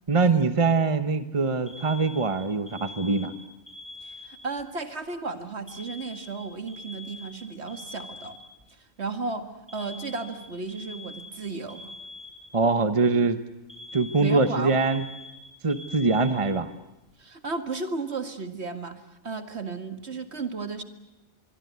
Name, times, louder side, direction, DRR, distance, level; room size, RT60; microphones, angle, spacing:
voice 1, 0.1-3.3 12.5-13.4 13.9-15.0 15.6-16.7, right 4 dB, 25° right, 10 dB, 1.1 m, -23 dB
Alarm, 1.7-4.6 5.7-8.6 9.7-12.7 13.7-16.7, left 2 dB, ahead, 5.6 m, -44 dB
voice 2, 4.0-8.4 9.0-9.5 9.7-11.9 14.2-14.8 17.2-20.8, right 4 dB, 60° right, 8 dB, 2.3 m, -34 dB
24.5 x 23.0 x 9.5 m, 0.96 s
omnidirectional pair, 1.3 m